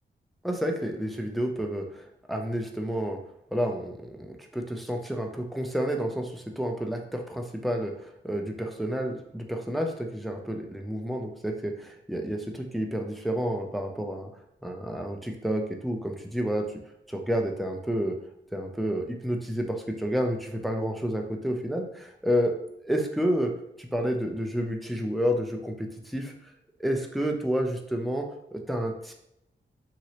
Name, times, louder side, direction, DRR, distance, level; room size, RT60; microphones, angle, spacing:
voice 1, 0.4-3.2 3.5-14.3 14.6-16.7 17.1-18.2 18.5-22.6 22.9-23.5 23.8-26.3 26.8-29.1, equal, ahead, 2 dB, 0.4 m, -30 dB
2.9 x 2.7 x 2.9 m, 0.80 s
wide cardioid pair, 125°, 19 cm